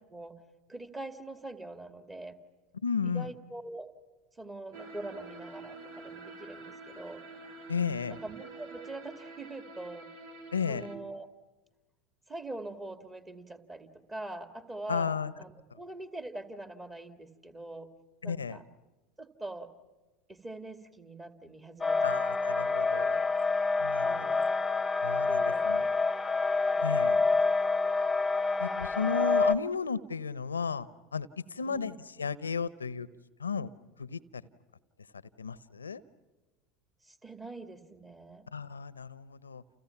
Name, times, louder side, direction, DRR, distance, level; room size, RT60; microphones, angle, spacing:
voice 1, 0.7-2.4 3.0-3.9 4.4-7.2 8.1-10.1 10.7-11.3 12.3-17.9 18.2-18.6 19.2-19.7 20.3-22.0 22.9-23.2 24.0-24.5 25.3-26.1 26.7-27.4 31.7-32.3 37.0-38.5, right 2 dB, 20° right, 8 dB, 2.3 m, -44 dB
voice 2, 2.8-3.3 7.7-8.2 10.5-10.9 14.9-15.3 18.2-18.6 22.0-23.2 23.8-24.3 25.0-25.8 26.8-27.2 28.6-33.1 33.4-33.7 34.0-34.4 35.4-36.0 38.5-39.6, left 6 dB, 90° left, 19 dB, 0.8 m, -33 dB
sound 1, 4.7-11.0, right 3 dB, 60° right, 3.2 m, -47 dB
sound 2, 21.8-29.6, left 3 dB, 15° left, 1.1 m, -27 dB
30.0 x 29.5 x 5.9 m, 1.2 s
hypercardioid pair, 80°, 0 cm